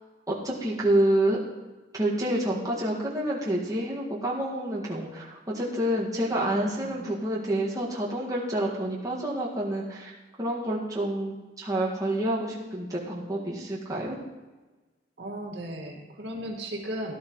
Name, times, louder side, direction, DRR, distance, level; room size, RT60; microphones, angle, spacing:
voice 1, 0.3-1.4 1.9-14.2, right 1 dB, 20° right, -5 dB, 1.9 m, -28 dB
voice 2, 6.3-7.1 15.2-17.2, right 1 dB, 75° right, -1 dB, 2.0 m, -36 dB
17.5 x 12.0 x 3.2 m, 1.2 s
head